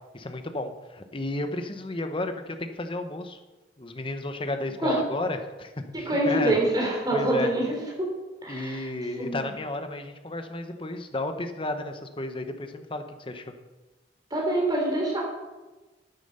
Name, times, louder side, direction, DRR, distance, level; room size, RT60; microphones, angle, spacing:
voice 1, 0.1-3.4 3.8-6.6 7.1-7.5 8.5-13.5, left 2 dB, 30° left, 7 dB, 1.0 m, -33 dB
voice 2, 5.9-7.7 8.4-8.9 9.2-9.5 14.3-15.2, right 1 dB, 25° right, -1 dB, 3.5 m, -25 dB
9.8 x 9.1 x 6.7 m, 1.2 s
head